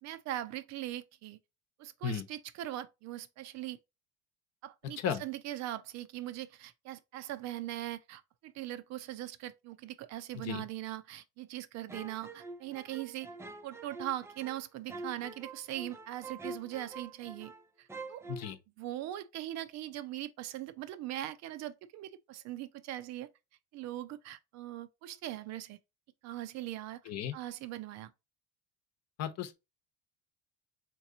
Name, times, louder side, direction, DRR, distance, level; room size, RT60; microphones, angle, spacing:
voice 1, 0.0-1.4 1.8-3.8 4.6-13.3 13.6-17.5 17.8-18.3 18.8-23.3 23.7-25.8 26.2-27.0 27.3-28.1, right 13 dB, 55° right, 0.6 m, -40 dB
sound 1, 11.9-17.6 17.9-18.5, right 3 dB, 10° right, 0.4 m, -46 dB
voice 2, 27.1-27.4 29.2-29.5, left 8 dB, 55° left, 0.9 m, -34 dB
3.7 x 3.0 x 2.7 m
supercardioid pair, 90°, 32 cm